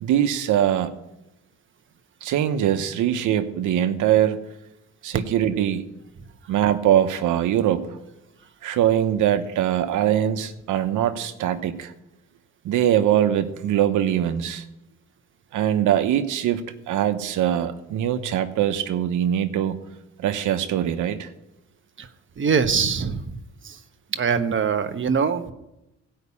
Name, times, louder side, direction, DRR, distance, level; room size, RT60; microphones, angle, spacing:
voice 1, 0.0-0.9 2.2-4.5 5.0-5.9 6.5-7.9 8.6-11.9 12.6-14.6 15.5-19.8 20.2-21.3, right 10 dB, 85° right, 8 dB, 1.1 m, -22 dB
voice 2, 22.4-23.8 24.1-25.5, right 6 dB, 40° right, 8 dB, 1.1 m, -23 dB
16.0 x 5.7 x 8.5 m, 0.91 s
cardioid pair, 90°, 30 cm